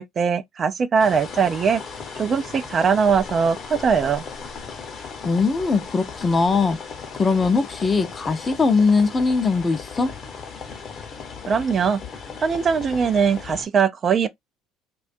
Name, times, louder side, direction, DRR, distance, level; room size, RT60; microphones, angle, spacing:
voice 1, 0.0-1.8 2.2-4.2 11.5-12.0 12.4-14.3, right 6 dB, 40° right, 0.3 m, -21 dB
sound 1, 1.0-13.7, left 5 dB, 45° left, 0.8 m, -37 dB
voice 2, 5.2-6.8 7.1-10.1, left 4 dB, 30° left, 0.5 m, -20 dB
2.5 x 2.2 x 2.4 m
hypercardioid pair, 75°, 0 cm